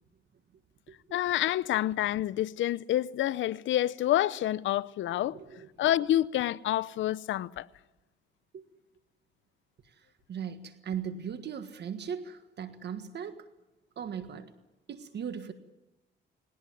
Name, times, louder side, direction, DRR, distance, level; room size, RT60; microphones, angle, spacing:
voice 1, 1.1-5.4 5.8-7.7, left 13 dB, 75° left, 0.7 m, -28 dB
voice 2, 5.2-5.7 8.5-8.7 9.8-13.5 14.0-14.5 14.9-15.5, right 7 dB, 60° right, 1.6 m, -38 dB
20.0 x 19.0 x 9.7 m
cardioid pair, 90°, 20 cm